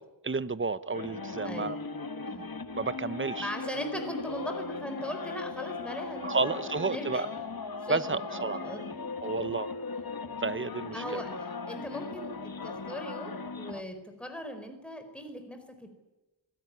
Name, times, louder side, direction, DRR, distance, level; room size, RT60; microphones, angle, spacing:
voice 1, 0.2-1.8 2.7-3.5 6.2-7.3 7.9-8.6 9.2-9.7 10.4-11.2, right 4 dB, 25° right, 0.9 m, -31 dB
sound 1, 0.9-13.8, left 4 dB, 50° left, 1.4 m, -38 dB
voice 2, 1.4-1.8 2.3-2.5 3.4-7.4 7.8-8.9 9.2-9.3 10.9-15.9, equal, ahead, 4.5 m, -39 dB
26.0 x 17.0 x 9.8 m
wide cardioid pair, 80°, 44 cm